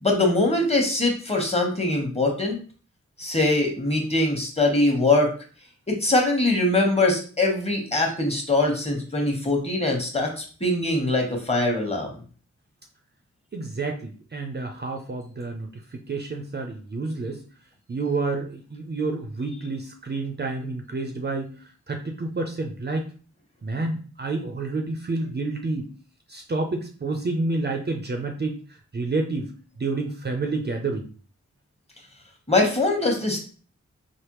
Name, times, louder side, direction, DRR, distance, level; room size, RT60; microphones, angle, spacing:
voice 1, 0.0-2.6 3.2-5.3 5.9-12.1 32.5-33.4, left 2 dB, 20° left, 1 dB, 1.2 m, -22 dB
voice 2, 13.5-17.4 17.9-23.1 23.6-25.9 26.3-28.6 28.9-29.5 29.8-31.0, right 3 dB, 35° right, 3 dB, 0.5 m, -29 dB
3.4 x 2.0 x 3.0 m, 0.39 s
cardioid pair, 45°, 30 cm